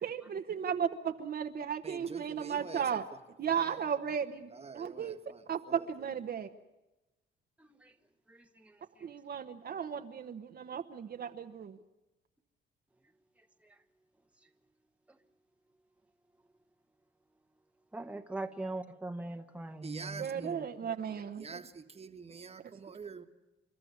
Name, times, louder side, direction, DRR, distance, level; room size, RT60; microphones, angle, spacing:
voice 1, 0.0-3.1 3.4-5.1 5.5-6.5 9.0-11.8 20.2-21.6, right 7 dB, 50° right, 1.1 m, -35 dB
voice 2, 1.8-3.0 3.5-3.8 4.5-5.4 5.7-5.9 19.8-20.5 21.4-23.2, right 5 dB, 30° right, 1.5 m, -46 dB
voice 3, 7.6-7.9 8.3-9.1 13.6-13.8 15.1-15.2 17.9-20.6, right 2 dB, 5° right, 1.2 m, -42 dB
29.0 x 12.5 x 9.5 m
cardioid pair, 90°, 20 cm